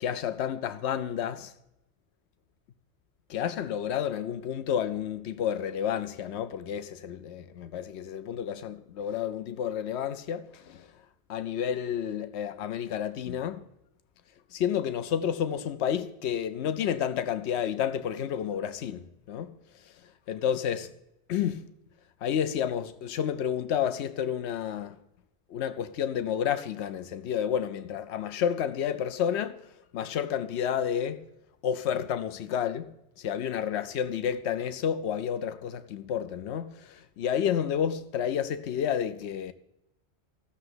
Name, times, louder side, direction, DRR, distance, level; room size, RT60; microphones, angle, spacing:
voice 1, 0.0-1.5 3.3-10.9 11.3-13.6 14.5-19.6 20.3-20.9 21.3-21.6 22.2-25.0 25.5-29.6 29.9-31.2 31.6-39.5, left 9 dB, 80° left, 1.0 m, -30 dB
14.5 x 6.8 x 7.9 m
omnidirectional pair, 1.1 m